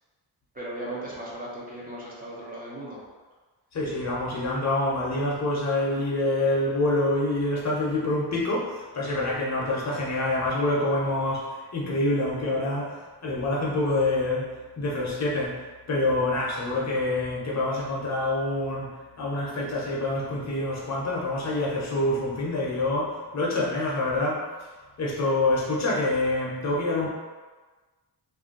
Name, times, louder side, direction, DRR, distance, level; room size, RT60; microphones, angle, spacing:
voice 1, 0.5-3.0, right 1 dB, 20° right, -7 dB, 0.5 m, -37 dB
voice 2, 3.7-24.4 25.0-27.1, left 2 dB, 40° left, -4 dB, 0.7 m, -26 dB
2.5 x 2.2 x 3.7 m, 1.3 s
wide cardioid pair, 150°, 41 cm